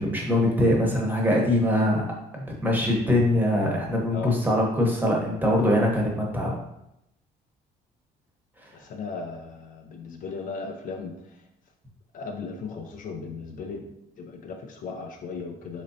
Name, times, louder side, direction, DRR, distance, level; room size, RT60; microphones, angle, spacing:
voice 1, 0.0-2.1 2.3-6.5, left 1 dB, 10° right, -1 dB, 0.9 m, -23 dB
voice 2, 8.7-11.4 12.1-15.8, left 4 dB, 50° left, 3 dB, 0.5 m, -37 dB
3.7 x 3.1 x 2.7 m, 0.83 s
cardioid pair, 110°, 17 cm